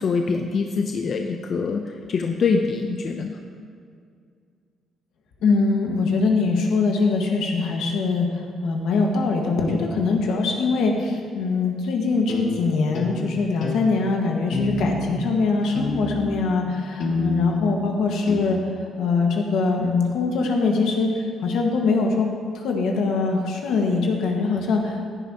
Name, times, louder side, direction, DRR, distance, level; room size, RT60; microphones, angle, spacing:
voice 1, 0.0-3.4, left 4 dB, 45° left, 4 dB, 0.6 m, -24 dB
voice 2, 5.4-18.6 19.0-22.3 22.5-25.1, left 4 dB, 80° left, 1 dB, 1.6 m, -22 dB
sound 1, 12.3-12.5 12.9-13.2 13.6-13.8 14.5-15.2 15.7-16.5 17.0-17.8 18.3-18.4, left 2 dB, 60° left, 1.5 m, -26 dB
15.0 x 10.0 x 2.9 m, 2.2 s
cardioid pair, 150°, 0 cm